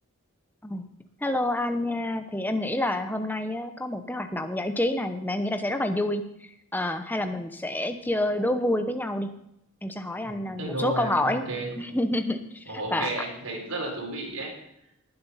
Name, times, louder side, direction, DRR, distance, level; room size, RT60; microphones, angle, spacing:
voice 1, 1.2-6.2 6.7-9.3 9.8-11.4 11.8-12.6 12.9-13.1, left 1 dB, 10° left, 7 dB, 0.9 m, -28 dB
voice 2, 10.2-11.7 12.7-14.5, right 2 dB, 85° right, -1 dB, 4.2 m, -33 dB
19.5 x 7.6 x 5.6 m, 0.81 s
head